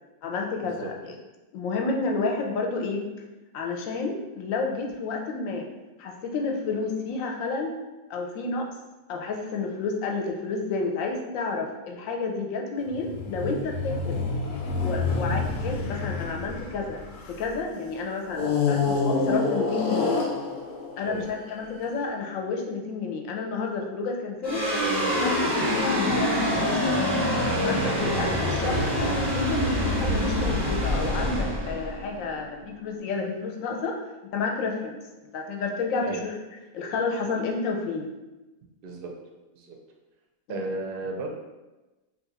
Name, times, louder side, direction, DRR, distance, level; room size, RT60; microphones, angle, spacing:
voice 1, 0.2-0.9 1.5-3.1 3.5-5.7 6.0-7.7 8.1-8.7 9.1-14.2 14.8-20.2 21.0-24.6 25.1-27.0 27.6-34.0 34.3-35.0 35.3-36.3 36.7-38.1 40.5-40.7, left 4 dB, 70° left, 2 dB, 0.9 m, -30 dB
sound 1, 12.9-17.6 18.3-21.7, left 4 dB, 90° left, 0.4 m, -28 dB
sound 2, 24.4-33.0, equal, 15° left, 0.7 m, -25 dB
voice 2, 28.0-28.3 36.0-36.2 38.8-39.2 39.5-39.8 40.5-41.3, right 3 dB, 60° right, 1 dB, 0.5 m, -34 dB
3.0 x 2.4 x 4.0 m, 1.1 s
omnidirectional pair, 1.5 m